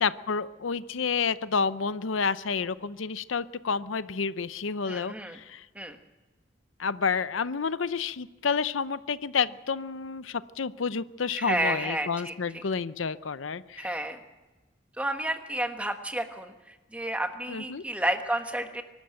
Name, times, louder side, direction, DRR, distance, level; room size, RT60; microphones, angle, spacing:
voice 1, 0.0-5.7 6.8-13.9 17.5-17.8, left 5 dB, 90° left, 15 dB, 0.7 m, -30 dB
voice 2, 4.9-5.4 5.7-6.0 11.4-12.3 13.8-14.2 15.0-18.8, right 1 dB, 5° right, 6 dB, 1.3 m, -31 dB
24.0 x 12.5 x 9.0 m, 1.2 s
head